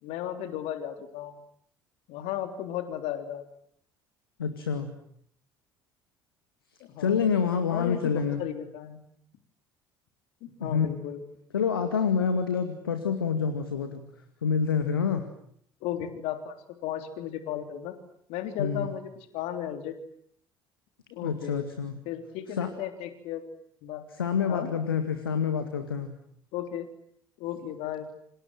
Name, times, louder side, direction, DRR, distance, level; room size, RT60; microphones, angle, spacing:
voice 1, 0.0-1.4 2.1-3.4 6.8-7.2 7.7-9.0 10.4-11.2 15.8-16.5 16.8-17.9 18.3-19.9 21.1-21.6 22.0-23.4 23.8-24.0 24.5-24.7 26.5-26.9 27.4-28.1, left 10 dB, 60° left, 8 dB, 3.4 m, -35 dB
voice 2, 4.4-4.9 7.0-8.4 10.6-10.9 11.5-14.0 14.4-15.3 18.6-18.9 21.2-21.9 22.6-22.7 24.2-26.1, left 6 dB, 80° left, 8 dB, 2.1 m, -27 dB
28.5 x 26.5 x 7.8 m, 0.67 s
figure-of-eight pair, 60°, 12 cm